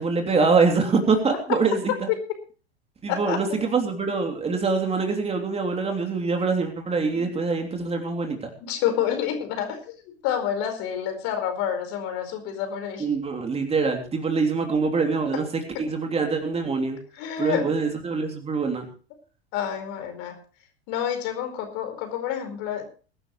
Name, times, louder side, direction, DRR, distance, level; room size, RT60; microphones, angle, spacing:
voice 1, 0.0-2.1 3.0-8.5 13.0-15.4 15.8-17.0 17.4-18.9, right 4 dB, 20° right, 3 dB, 3.2 m, -24 dB
voice 2, 3.1-3.4 7.1-7.3 8.6-13.1 15.7-15.8 17.1-17.7 19.5-20.4 20.9-22.9, left 9 dB, 45° left, 6 dB, 4.7 m, -28 dB
22.5 x 12.0 x 3.2 m, 0.37 s
figure-of-eight pair, 90°, 31 cm